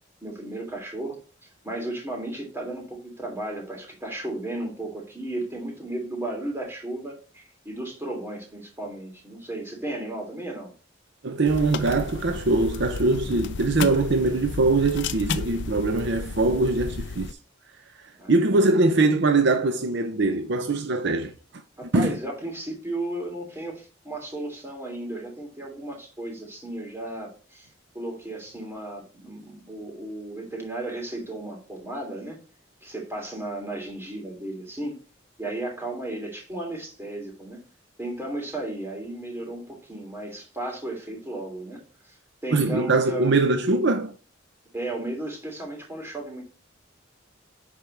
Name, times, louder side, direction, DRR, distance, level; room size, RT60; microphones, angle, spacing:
voice 1, 0.2-1.2 1.6-10.7 18.2-18.9 21.8-27.7 27.9-32.4 32.8-35.0 35.4-37.6 38.0-42.1 42.4-43.4 44.7-46.4, right 1 dB, 15° right, 3.1 m, -34 dB
voice 2, 11.2-17.4 18.3-21.3 21.9-22.2 42.5-44.1, right 3 dB, 65° right, 0.7 m, -22 dB
sound 1, 11.4-17.3, left 4 dB, 65° left, 0.5 m, -33 dB
10.5 x 4.7 x 3.4 m
head